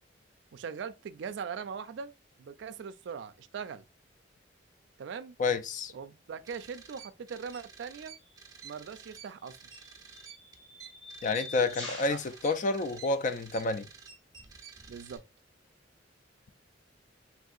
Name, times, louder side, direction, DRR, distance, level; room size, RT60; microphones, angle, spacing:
voice 1, 0.5-2.1 2.4-3.8 5.0-5.4 5.9-8.2 8.6-9.6 12.1-12.2 14.9-15.2, right 6 dB, 70° right, 0.3 m, -40 dB
voice 2, 5.4-5.9 11.2-13.9, left 3 dB, 40° left, 0.3 m, -29 dB
sound 1, 6.4-15.2, right 6 dB, 20° right, 0.5 m, -51 dB
sound 2, 8.2-8.4 9.4-13.6, left 2 dB, 70° left, 1.3 m, -47 dB
3.5 x 2.7 x 2.3 m
head